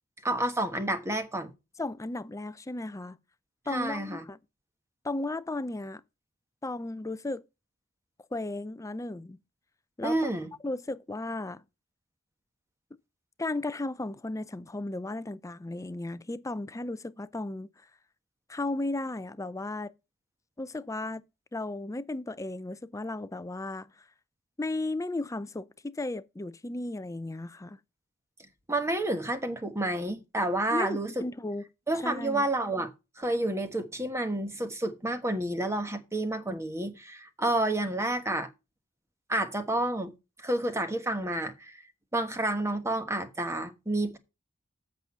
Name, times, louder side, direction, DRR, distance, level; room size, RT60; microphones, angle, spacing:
voice 1, 0.2-1.5 3.7-4.2 10.0-10.5 28.7-31.3 31.9-38.5 39.3-40.1 40.4-41.8 42.1-44.2, right 1 dB, 15° right, 1.2 m, -30 dB
voice 2, 1.8-3.2 3.7-4.4 5.0-6.0 6.6-7.4 8.3-9.4 10.0-10.3 10.6-11.6 13.4-17.7 18.5-19.9 20.6-21.2 21.5-23.9 24.6-27.8 30.7-31.6 32.0-32.5, left 2 dB, 15° left, 0.5 m, -35 dB
8.1 x 6.2 x 5.6 m
head